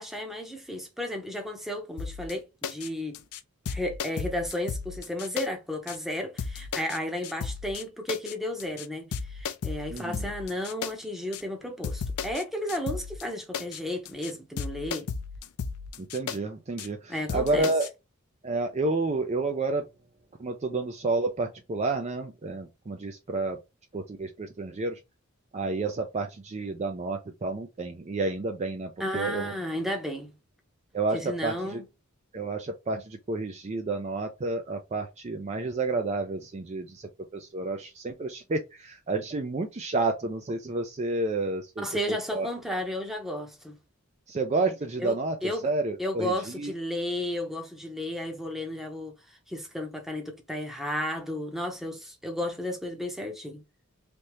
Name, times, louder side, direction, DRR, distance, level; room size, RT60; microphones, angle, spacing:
voice 1, 0.0-3.2 3.7-15.1 17.1-17.7 29.0-30.3 31.1-31.8 41.8-43.8 45.0-45.1 45.4-45.7 46.0-53.6, left 1 dB, ahead, 0.8 m, -33 dB
sound 1, 2.0-2.3 2.6-2.9 3.1-3.4 3.7-5.5 5.9-6.0 6.4-7.0 7.2-7.8 8.1-8.3 8.6-8.9 9.1-10.9 11.3-11.4 11.8-12.4 12.7-13.2 13.5-13.8 14.1-14.3 14.6-16.4 16.8-16.9 17.3-17.9, left 6 dB, 85° left, 0.5 m, -34 dB
voice 2, 9.9-10.3 16.0-17.9 18.4-19.8 20.4-23.6 23.9-25.0 25.5-29.5 30.9-31.8 32.3-42.5 44.3-45.4 45.6-46.7, right 3 dB, 30° right, 0.4 m, -30 dB
3.4 x 2.7 x 3.0 m
head